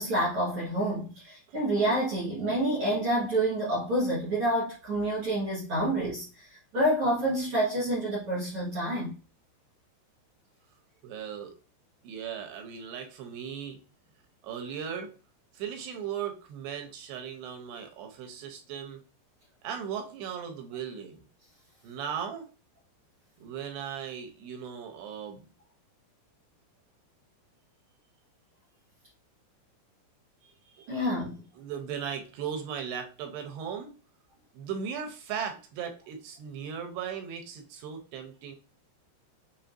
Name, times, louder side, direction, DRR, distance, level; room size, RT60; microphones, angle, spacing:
voice 1, 0.0-9.1 30.9-31.5, right 1 dB, 65° right, 1.3 m, -28 dB
voice 2, 11.0-11.6 12.0-13.8 14.4-15.1 15.5-19.0 19.6-21.2 21.8-22.5 23.4-25.4 30.4-31.1 31.6-33.9 34.5-38.6, right 8 dB, 85° right, 2.7 m, -37 dB
6.9 x 2.8 x 2.5 m
omnidirectional pair, 5.0 m